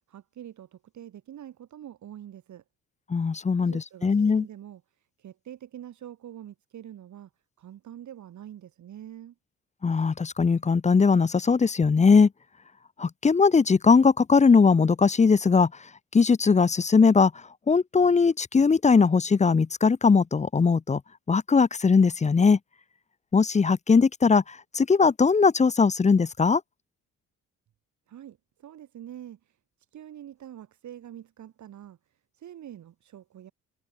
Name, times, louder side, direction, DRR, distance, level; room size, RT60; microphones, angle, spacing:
voice 1, 0.1-2.6 3.6-4.8 5.2-7.3 7.6-9.3 28.1-29.6 29.9-32.0 32.3-33.5, right 11 dB, 70° right, 7.3 m, -45 dB
voice 2, 3.1-3.7 4.0-4.4 9.8-12.3 13.0-15.7 16.1-17.3 17.7-21.0 21.3-22.6 23.3-26.6, left 5 dB, 25° left, 0.8 m, -20 dB
cardioid pair, 90°, 30 cm